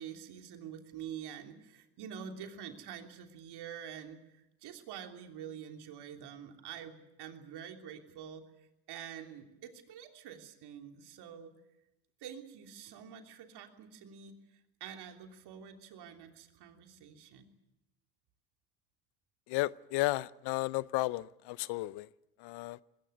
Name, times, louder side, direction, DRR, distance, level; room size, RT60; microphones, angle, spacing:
voice 1, 0.0-11.5 12.2-17.5, right 8 dB, 60° right, 3.2 m, -47 dB
voice 2, 19.5-22.1 22.4-22.8, left 20 dB, 60° left, 0.7 m, -33 dB
21.0 x 17.5 x 9.5 m
hypercardioid pair, 80°, 45 cm